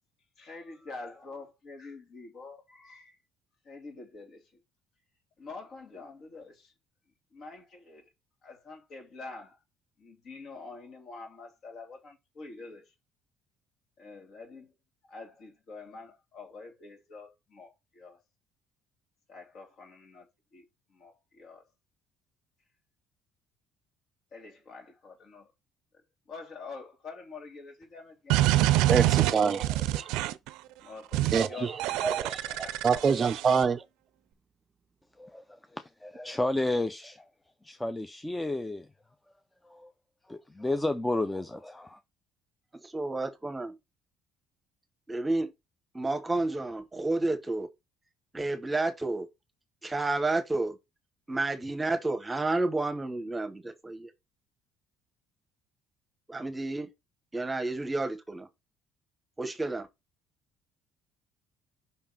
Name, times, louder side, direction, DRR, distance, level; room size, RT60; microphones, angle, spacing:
voice 1, 0.4-3.2 3.6-4.6 5.4-6.7 7.3-8.1 8.4-9.6 10.0-12.9 14.0-14.8 15.1-18.2 19.3-20.3 20.5-20.6 20.9-21.7 24.3-25.5 26.3-28.8 29.0-29.8 30.8-33.3, left 4 dB, 50° left, 2.7 m, -46 dB
sound 1, 28.3-30.5 31.1-31.5 31.8-33.6, right 15 dB, 85° right, 0.5 m, -26 dB
voice 2, 28.9-30.0 31.3-31.5 32.0-32.4 32.8-33.8, right 6 dB, 35° right, 0.5 m, -25 dB
voice 3, 35.7-37.3 37.6-38.9 39.7-39.9 40.3-42.0, left 2 dB, 10° left, 0.6 m, -32 dB
voice 4, 42.8-43.8 45.1-45.5 45.9-47.7 48.3-49.3 49.8-50.8 51.3-54.1 56.3-56.9 57.3-58.5 59.4-59.8, right 2 dB, 15° right, 1.1 m, -30 dB
5.6 x 3.6 x 5.8 m
cardioid pair, 110°, 0 cm